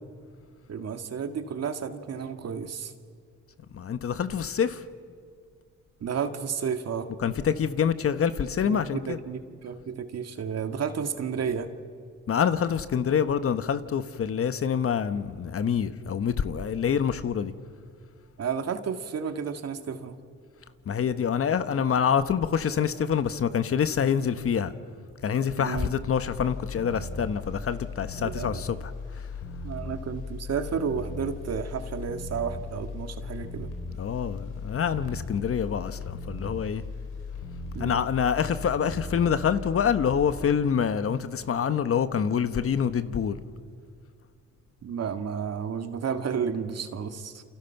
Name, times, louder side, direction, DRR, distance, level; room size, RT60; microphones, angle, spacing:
voice 1, 0.7-2.9 6.0-7.1 8.7-11.7 18.4-20.2 25.6-25.9 28.2-28.6 29.6-33.7 37.7-38.1 44.8-47.4, right 6 dB, 55° right, 2.0 m, -32 dB
voice 2, 3.7-4.8 7.2-9.2 12.3-17.5 20.9-24.7 25.2-28.9 34.0-36.8 37.8-43.4, left 7 dB, 50° left, 1.2 m, -26 dB
sound 1, 25.9-41.6 41.9-42.0, left 3 dB, 85° left, 4.4 m, -38 dB
28.5 x 28.0 x 5.9 m
cardioid pair, 90°, 30 cm